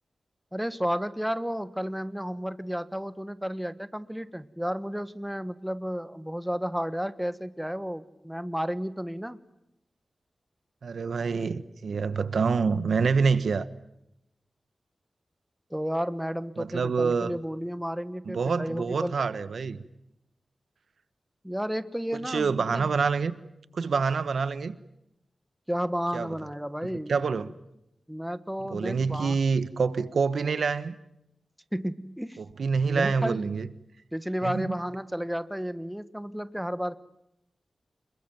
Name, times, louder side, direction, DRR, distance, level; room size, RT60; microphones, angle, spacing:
voice 1, 0.5-9.4 15.7-19.2 21.4-22.9 25.7-27.1 28.1-29.4 31.7-32.4 32.9-33.4 34.1-37.0, equal, 5° right, 1.3 m, -32 dB
voice 2, 10.8-13.7 16.6-17.4 18.2-19.8 22.1-23.3 23.7-24.8 26.1-26.3 27.1-27.5 28.6-31.0 32.4-33.7 34.4-34.7, right 5 dB, 85° right, 1.3 m, -26 dB
27.5 x 22.5 x 9.1 m
wide cardioid pair, 90°, 0 cm